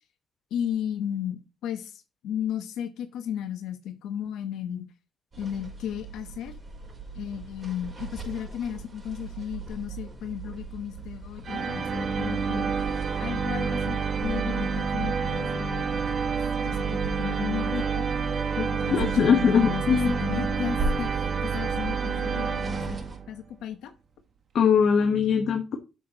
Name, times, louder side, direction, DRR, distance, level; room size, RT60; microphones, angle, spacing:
voice 1, 0.5-4.9 5.4-6.5 7.1-12.7 13.2-18.1 18.6-23.0 23.3-23.9, left 9 dB, 85° left, 7 dB, 1.0 m, -34 dB
sound 1, 5.3-23.2, right 2 dB, 35° right, 5.1 m, -40 dB
sound 2, 11.4-23.4, right 5 dB, 55° right, 1.5 m, -28 dB
voice 2, 18.6-20.2 24.5-25.8, left 7 dB, 65° left, 4 dB, 1.3 m, -22 dB
8.5 x 7.2 x 3.0 m, 0.30 s
cardioid pair, 90°, 0 cm